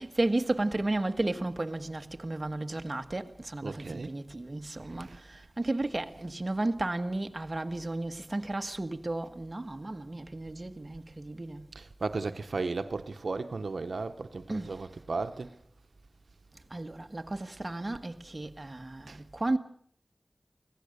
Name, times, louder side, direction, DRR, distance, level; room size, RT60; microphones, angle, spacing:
voice 1, 0.0-11.6 14.5-14.8 16.7-19.6, right 2 dB, 40° right, 1.5 m, -33 dB
voice 2, 3.6-4.1 4.8-5.2 6.2-6.3 11.7-15.6 19.1-19.2, right 3 dB, 90° right, 0.8 m, -35 dB
24.5 x 16.5 x 6.7 m
wide cardioid pair, 45°, 0 cm